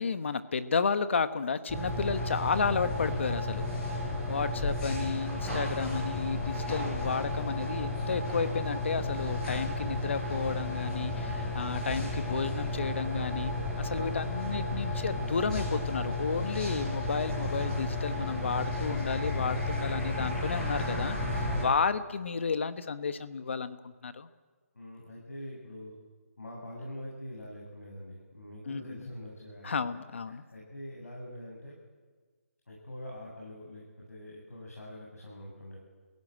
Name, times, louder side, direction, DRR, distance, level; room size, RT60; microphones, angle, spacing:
voice 1, 0.0-3.7 4.3-21.2 21.6-24.3 28.7-29.1 29.6-30.4, left 5 dB, 50° left, 12 dB, 1.3 m, -32 dB
sound 1, 1.7-21.7, left 2 dB, 10° left, 4.9 m, -33 dB
voice 2, 24.7-26.0 26.4-30.0 30.3-31.8 32.7-35.8, left 1 dB, 80° left, -3 dB, 7.9 m, -44 dB
27.5 x 16.5 x 9.0 m, 1.5 s
hypercardioid pair, 165°, 8 cm